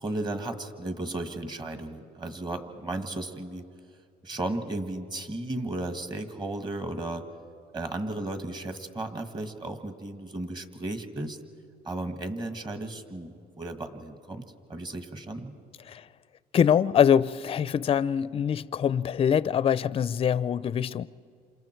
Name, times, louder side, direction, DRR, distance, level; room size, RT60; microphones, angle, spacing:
voice 1, 0.0-3.6 4.2-7.2 7.7-11.4 11.8-14.4 14.7-15.6, right 2 dB, 25° right, 1.8 m, -34 dB
voice 2, 16.5-21.1, left 8 dB, 35° left, 0.5 m, -24 dB
29.0 x 27.0 x 4.6 m
cardioid pair, 110°, 17 cm